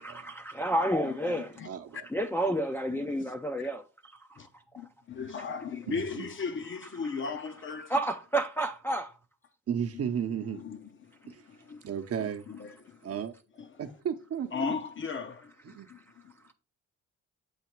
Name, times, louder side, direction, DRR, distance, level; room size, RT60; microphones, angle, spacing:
voice 1, 0.0-1.5 2.1-4.4 7.9-9.1, right 1 dB, 10° left, 0.5 m, -30 dB
voice 2, 1.0-1.7 2.9-3.7 4.4-4.5 4.8-8.0 9.9-10.1 10.5-11.9 12.2-13.2 13.6-13.8 14.5-16.3, left 5 dB, 40° left, 0.7 m, -38 dB
voice 3, 1.6-2.1 5.9-6.2 9.7-10.6 11.3-11.4 11.8-12.5 13.0-13.3 13.8-14.7 15.7-15.9, right 8 dB, 50° right, 0.8 m, -34 dB
8.0 x 2.8 x 4.5 m
cardioid pair, 90°, 30 cm